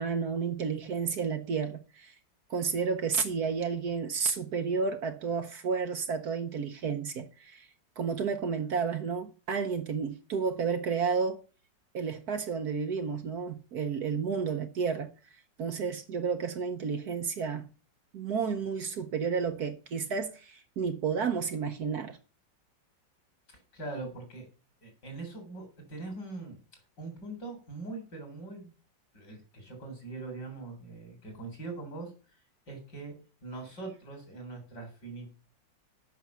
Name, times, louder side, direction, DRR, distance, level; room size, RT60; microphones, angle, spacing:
voice 1, 0.0-2.1 2.5-7.7 8.0-11.4 11.9-15.1 15.6-17.7 18.1-22.2, right 5 dB, 60° right, 1.3 m, -31 dB
voice 2, 23.5-24.5 24.8-26.6 27.0-28.7 29.1-32.1 32.7-33.1 33.4-35.3, right 3 dB, 60° left, 4.4 m, -42 dB
8.2 x 6.1 x 7.1 m
omnidirectional pair, 2.0 m